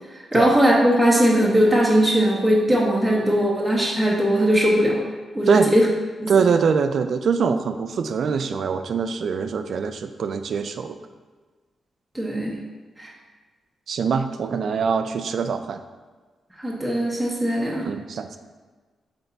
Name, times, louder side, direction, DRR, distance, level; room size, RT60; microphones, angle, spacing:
voice 1, 0.1-5.0 5.3-5.9 6.2-6.3 12.1-12.6 13.0-13.1 16.6-17.9, equal, ahead, -4 dB, 0.9 m, -19 dB
voice 2, 6.3-11.0 13.9-15.8 17.8-18.4, right 6 dB, 55° right, 9 dB, 0.4 m, -23 dB
8.1 x 3.5 x 4.0 m, 1.4 s
wide cardioid pair, 170°, 0 cm